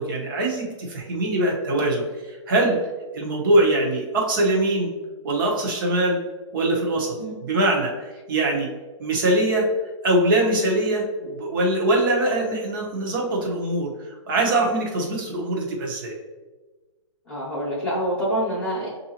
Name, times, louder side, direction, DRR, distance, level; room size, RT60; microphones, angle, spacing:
voice 1, 0.0-2.8 3.1-4.9 5.2-6.2 6.5-7.2 7.4-8.7 9.0-9.7 10.0-13.9 14.3-16.2, right 1 dB, 40° right, 0 dB, 1.0 m, -22 dB
voice 2, 17.3-18.9, equal, 10° left, -10 dB, 0.9 m, -26 dB
6.6 x 2.7 x 2.8 m, 1.3 s
hypercardioid pair, 165°, 16 cm